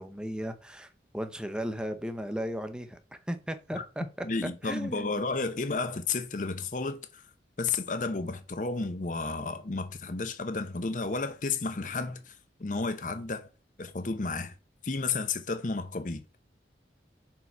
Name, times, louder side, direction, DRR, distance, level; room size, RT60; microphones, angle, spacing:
voice 1, 0.0-4.3 4.6-5.2, equal, 5° right, 0.6 m, -36 dB
voice 2, 4.2-7.2 7.6-12.3 12.6-13.5 13.8-14.5 14.8-16.2, left 4 dB, 45° left, 0.7 m, -32 dB
5.4 x 4.5 x 4.5 m
head